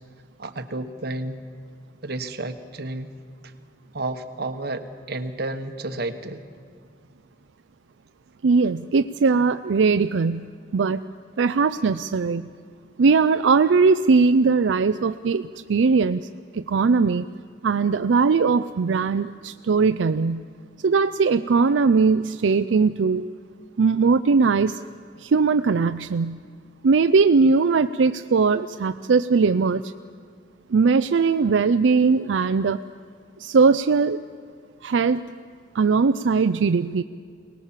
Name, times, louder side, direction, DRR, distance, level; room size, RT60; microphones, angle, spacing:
voice 1, 0.4-1.4 2.0-3.1 3.4-3.5 3.9-6.4, right 2 dB, 55° right, 7 dB, 1.3 m, -31 dB
voice 2, 8.4-11.0 11.4-12.5 13.0-16.3 16.5-17.3 17.6-20.4 20.8-23.3 23.8-24.8 25.2-26.4 26.8-29.8 30.7-32.8 33.4-34.2 34.8-35.2 35.7-37.0, right 4 dB, 85° right, 10 dB, 0.5 m, -20 dB
23.0 x 19.5 x 7.4 m, 2.2 s
head